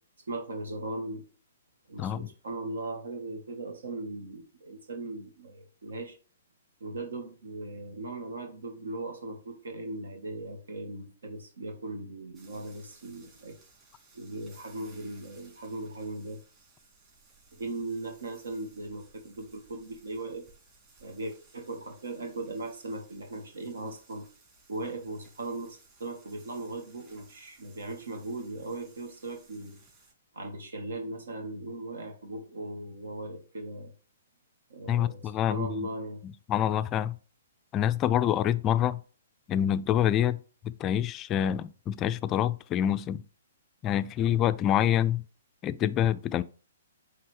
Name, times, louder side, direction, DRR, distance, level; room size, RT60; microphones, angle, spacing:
voice 1, 0.3-1.2 1.9-6.2 6.8-13.6 14.1-16.4 17.5-20.5 21.0-24.3 24.7-29.8 30.3-33.9 34.7-36.2, right 2 dB, 75° right, 1.4 m, -38 dB
voice 2, 2.0-2.3 34.9-35.8 36.2-37.2 37.7-39.0 39.5-40.4 40.6-43.2 43.8-45.2 45.6-46.4, left 10 dB, 25° left, 0.3 m, -26 dB
sound 1, 12.3-30.1, right 3 dB, 25° right, 3.5 m, -60 dB
9.2 x 3.4 x 3.2 m
hypercardioid pair, 130°, 0 cm